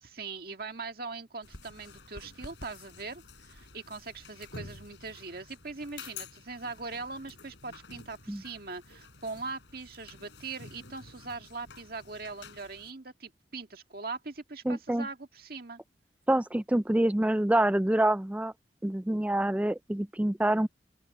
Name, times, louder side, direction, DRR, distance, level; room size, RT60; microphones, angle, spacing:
voice 1, 0.0-15.8, right 4 dB, 55° right, 1.9 m, -41 dB
sound 1, 1.4-12.9, left 4 dB, 85° left, 3.8 m, -50 dB
voice 2, 14.7-15.1 16.3-18.5 18.8-20.7, right 1 dB, 10° right, 0.3 m, -26 dB
open air
head